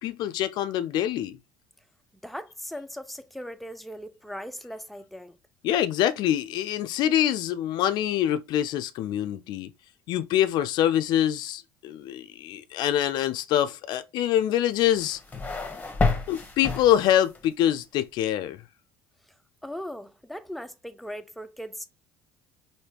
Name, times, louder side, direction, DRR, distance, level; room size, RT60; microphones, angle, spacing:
voice 1, 0.0-1.4 5.6-9.7 10.1-15.2 16.3-18.6, left 11 dB, 65° left, 0.5 m, -25 dB
voice 2, 2.2-5.4 19.6-21.9, equal, ahead, 0.5 m, -38 dB
sound 1, 14.7-17.4, left 3 dB, 20° left, 0.9 m, -29 dB
3.4 x 2.7 x 2.9 m
supercardioid pair, 75°, 8 cm